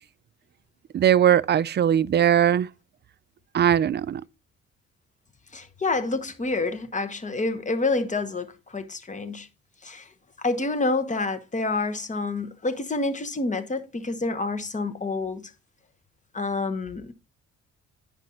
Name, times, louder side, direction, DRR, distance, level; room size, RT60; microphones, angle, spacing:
voice 1, 0.9-2.7 3.5-4.2, right 10 dB, 35° right, 0.4 m, -20 dB
voice 2, 5.5-9.5 9.8-10.1 10.4-15.5 16.3-17.1, left 3 dB, 25° left, 1.2 m, -28 dB
10.0 x 5.3 x 4.0 m
cardioid pair, 90°, 30 cm